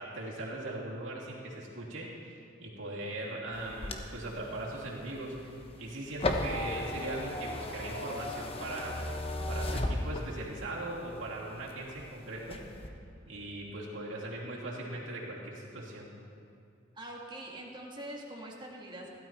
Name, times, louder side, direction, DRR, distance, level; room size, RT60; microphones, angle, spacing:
voice 1, 0.0-9.0 9.5-12.6 13.3-16.1, right 1 dB, 70° right, -5 dB, 3.0 m, -39 dB
sound 1, 3.5-10.6 11.1-12.0 12.4-12.9, left 1 dB, 30° left, 0.9 m, -36 dB
voice 2, 16.9-19.1, right 1 dB, 25° right, -1 dB, 1.8 m, -43 dB
16.5 x 12.0 x 4.5 m, 2.4 s
head